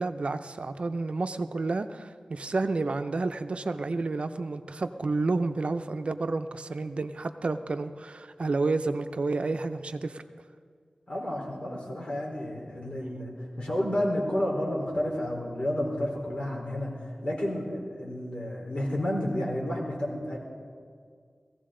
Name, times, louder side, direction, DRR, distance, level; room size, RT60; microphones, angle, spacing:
voice 1, 0.0-10.2, right 3 dB, 60° right, 9 dB, 0.5 m, -30 dB
voice 2, 11.1-13.3 13.6-20.4, left 1 dB, 55° left, -3 dB, 3.9 m, -31 dB
18.5 x 15.5 x 3.8 m, 2.1 s
wide cardioid pair, 90°, 2 cm